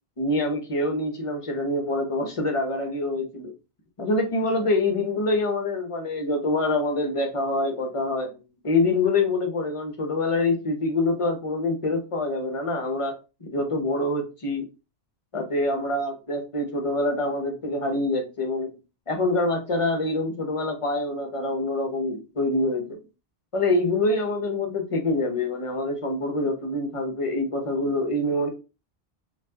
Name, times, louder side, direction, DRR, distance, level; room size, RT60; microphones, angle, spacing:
voice 1, 0.2-3.5 4.0-8.4 8.6-13.1 13.4-14.7 15.3-18.8 19.1-23.0 23.5-28.5, left 2 dB, 35° left, 0.7 m, -25 dB
4.3 x 2.4 x 2.7 m
omnidirectional pair, 1.1 m